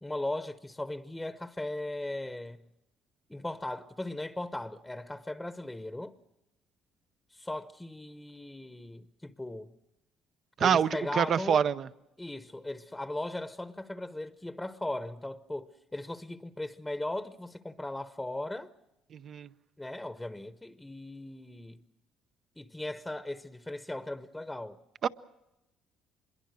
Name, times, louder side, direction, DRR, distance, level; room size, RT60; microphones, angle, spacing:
voice 1, 0.0-2.6 3.3-6.1 7.3-9.7 10.6-11.7 12.2-18.7 19.8-21.8 22.6-24.8, left 1 dB, 10° left, 1.0 m, -38 dB
voice 2, 10.6-11.9 19.1-19.5 25.0-25.1, right 8 dB, 55° right, 0.8 m, -26 dB
25.5 x 22.5 x 6.4 m
cardioid pair, 85°, 0 cm